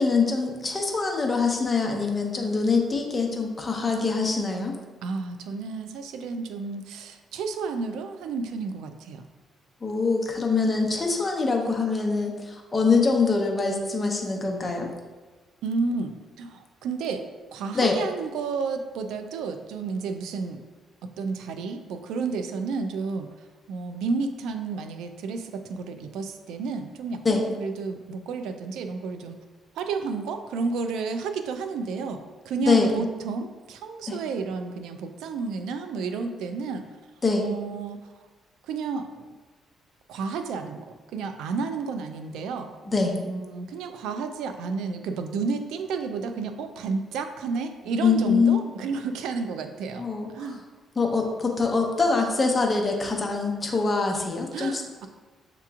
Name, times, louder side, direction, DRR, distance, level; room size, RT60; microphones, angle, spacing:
voice 1, 0.0-4.7 9.8-14.9 17.7-18.0 27.2-27.5 32.7-32.9 34.1-34.2 37.2-37.5 42.9-43.2 48.0-48.6 50.0-50.6 51.0-54.8, left 4 dB, 25° left, 1 dB, 0.7 m, -24 dB
voice 2, 5.0-9.2 15.6-20.6 21.2-23.3 23.7-29.4 29.8-36.8 37.4-38.0 38.7-39.2 40.1-40.9 41.1-42.7 43.2-50.0 50.3-50.6 54.5-55.1, right 4 dB, 90° right, 7 dB, 0.3 m, -31 dB
6.7 x 2.9 x 2.4 m, 1.3 s
cardioid pair, 90°, 0 cm